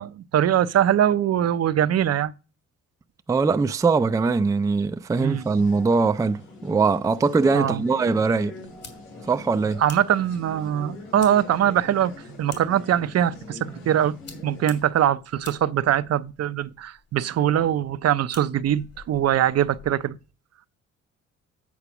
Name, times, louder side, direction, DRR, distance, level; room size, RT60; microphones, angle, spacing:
voice 1, 0.0-2.3 5.2-5.4 7.5-7.8 9.8-12.1 12.4-13.6 13.9-14.1 14.4-20.2, right 10 dB, 55° right, 0.6 m, -22 dB
voice 2, 3.3-8.6 9.3-9.8, right 4 dB, 10° right, 0.4 m, -22 dB
sound 1, 5.1-14.8, left 2 dB, 80° left, 5.4 m, -42 dB
sound 2, 8.6-20.1, left 5 dB, 55° left, 2.4 m, -49 dB
8.5 x 3.9 x 5.9 m
cardioid pair, 90°, 30 cm